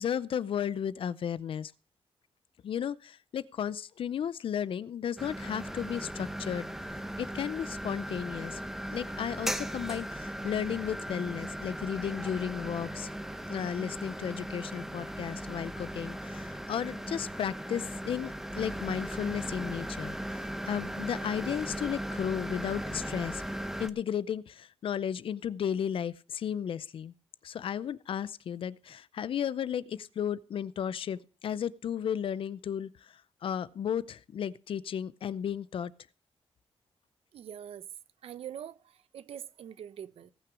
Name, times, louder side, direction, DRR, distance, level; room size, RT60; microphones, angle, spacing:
voice 1, 0.0-1.7 2.6-8.6 8.9-13.1 13.5-23.4 23.8-27.1 27.4-35.9, left 8 dB, 65° left, 0.6 m, -34 dB
sound 1, 5.2-23.9, right 1 dB, 5° right, 0.8 m, -38 dB
voice 2, 37.3-37.9 38.2-40.3, right 9 dB, 85° right, 0.7 m, -44 dB
18.0 x 6.0 x 6.2 m
wide cardioid pair, 125°, 10 cm